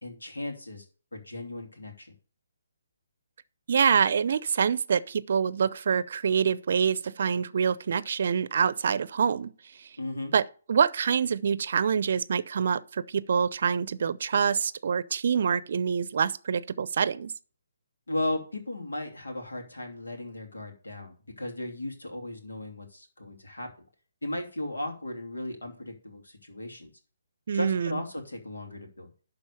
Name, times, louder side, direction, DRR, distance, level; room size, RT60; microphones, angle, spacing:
voice 1, 0.0-0.8 1.1-2.1 10.0-10.3 18.1-23.7 24.2-26.9 27.5-29.1, left 1 dB, 80° left, 2.8 m, -36 dB
voice 2, 3.7-9.5 9.8-9.9 10.3-17.3 27.5-28.0, right 6 dB, 55° right, 0.6 m, -26 dB
11.5 x 4.0 x 6.7 m
figure-of-eight pair, 140°, 0 cm